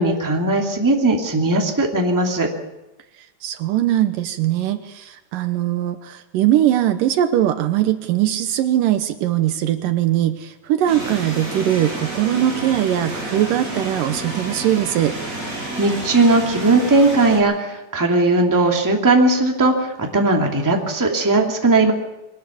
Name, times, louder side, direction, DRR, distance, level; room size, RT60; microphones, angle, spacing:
voice 1, 0.0-2.5 15.8-21.9, right 2 dB, 5° right, 1 dB, 1.8 m, -18 dB
voice 2, 3.4-15.2, right 12 dB, 75° right, 9 dB, 2.4 m, -20 dB
sound 1, 10.9-17.4, right 1 dB, 20° right, 7.8 m, -30 dB
22.5 x 19.0 x 7.2 m, 0.96 s
omnidirectional pair, 4.1 m